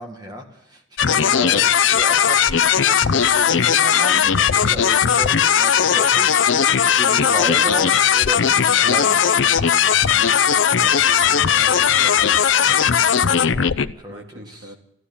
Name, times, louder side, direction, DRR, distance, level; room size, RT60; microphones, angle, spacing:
voice 1, 0.0-6.4 7.0-9.2 10.0-10.4 10.7-11.9 13.4-14.7, equal, 20° right, 1.8 m, -34 dB
sound 1, 1.0-13.9, left 8 dB, 90° left, 0.6 m, -17 dB
voice 2, 1.0-1.5 11.1-12.9 14.1-14.8, right 1 dB, 70° right, 2.2 m, -41 dB
14.5 x 11.5 x 8.5 m
head